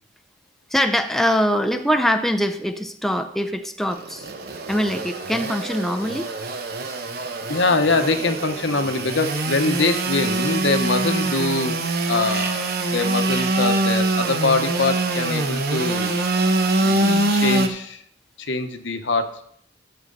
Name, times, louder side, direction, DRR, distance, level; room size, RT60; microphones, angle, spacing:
voice 1, 0.7-4.3 4.7-6.3 17.0-17.3, equal, ahead, 5 dB, 0.5 m, -23 dB
Engine / Sawing, 3.9-17.7, right 2 dB, 55° right, 1.0 m, -24 dB
voice 2, 7.5-11.8 12.1-16.1 16.8-18.0 18.4-19.4, left 3 dB, 75° left, 7 dB, 1.0 m, -23 dB
12.5 x 7.9 x 4.0 m, 0.66 s
head